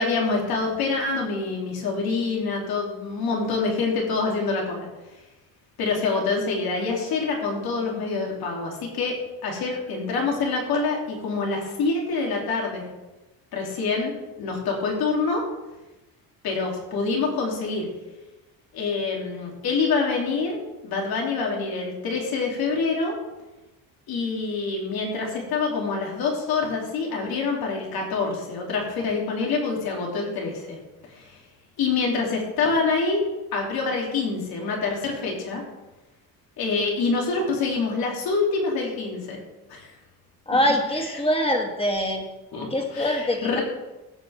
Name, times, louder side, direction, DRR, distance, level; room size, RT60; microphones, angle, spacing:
voice 1, 0.0-4.9 5.8-9.2 9.4-12.8 13.5-14.1 14.4-15.4 16.4-17.9 18.7-23.1 24.1-30.8 31.1-31.4 31.8-33.3 33.5-35.6 36.6-39.4 39.7-39.9 42.5-42.7 42.9-43.6, left 4 dB, 75° left, -1 dB, 3.1 m, -26 dB
voice 2, 40.5-42.3 42.7-43.6, equal, 15° left, 2 dB, 2.0 m, -24 dB
18.5 x 7.9 x 3.5 m, 1.0 s
cardioid pair, 125°, 37 cm